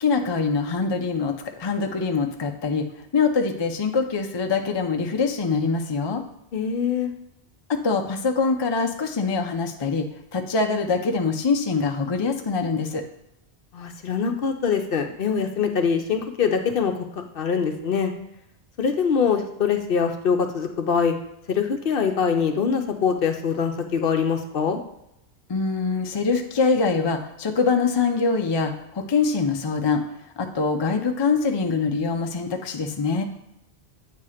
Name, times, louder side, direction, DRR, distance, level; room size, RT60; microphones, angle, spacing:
voice 1, 0.0-2.9 3.1-6.2 7.7-10.1 10.3-13.0 25.5-30.0 30.4-33.2, left 4 dB, 35° left, 4 dB, 0.4 m, -24 dB
voice 2, 6.5-7.1 13.7-18.1 18.8-21.1 21.5-24.8, left 6 dB, 60° left, 5 dB, 0.8 m, -23 dB
8.4 x 2.9 x 4.9 m, 0.83 s
omnidirectional pair, 1.1 m